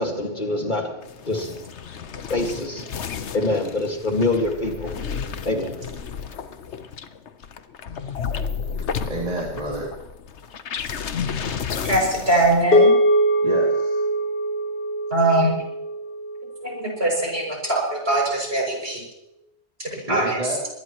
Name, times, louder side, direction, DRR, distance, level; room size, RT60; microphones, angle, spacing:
voice 1, 0.0-1.6 2.3-2.9 3.3-5.0 5.4-5.8, left 2 dB, 45° left, 2 dB, 2.2 m, -25 dB
sound 1, 1.0-12.6, left 6 dB, 90° left, 1.2 m, -32 dB
voice 2, 9.0-9.9 13.4-14.0 20.1-20.6, right 1 dB, 35° right, -4 dB, 2.9 m, -29 dB
voice 3, 11.8-13.0 15.1-15.6 16.6-19.0 19.8-20.5, right 1 dB, 65° right, -1 dB, 7.3 m, -22 dB
sound 2, 12.7-17.2, equal, 70° left, 5.6 m, -21 dB
23.0 x 19.5 x 3.1 m, 0.84 s
omnidirectional pair, 1.1 m